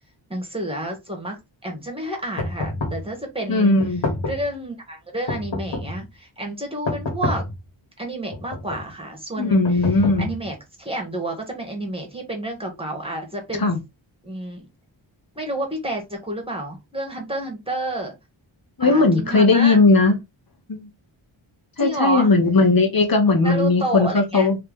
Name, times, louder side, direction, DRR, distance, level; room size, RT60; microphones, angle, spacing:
voice 1, 0.3-3.8 4.2-7.4 8.0-9.9 10.2-13.7 14.2-14.7 15.3-18.1 18.8-19.8 21.8-22.3 23.4-24.5, right 1 dB, 10° right, 1.6 m, -30 dB
sound 1, 2.4-3.1 3.8-4.5 5.3-6.0 6.9-7.6 8.3-8.9 9.6-10.5, left 2 dB, 70° left, 1.7 m, -28 dB
voice 2, 3.5-4.0 9.4-10.3 13.6-13.8 18.8-20.2 20.7-20.9 21.8-24.6, left 3 dB, 45° left, 1.2 m, -17 dB
3.3 x 3.0 x 3.5 m
wide cardioid pair, 75°, 48 cm